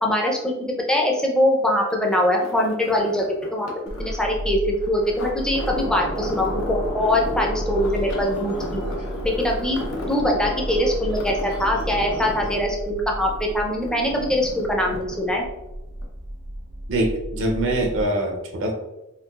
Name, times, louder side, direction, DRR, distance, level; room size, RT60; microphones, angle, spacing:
voice 1, 0.0-3.3 3.5-3.7 4.0-8.8 9.2-9.8 10.1-15.4, left 1 dB, 5° left, 0 dB, 0.4 m, -22 dB
sound 1, 1.9-15.7 16.0-16.1, left 3 dB, 80° left, 0.7 m, -38 dB
sound 2, 3.9-18.0, equal, 85° right, 0.8 m, -33 dB
sound 3, 5.5-12.6, equal, 60° left, 1.1 m, -33 dB
voice 2, 16.9-18.7, right 1 dB, 60° right, 3 dB, 0.5 m, -23 dB
3.8 x 2.4 x 2.2 m, 1.0 s
head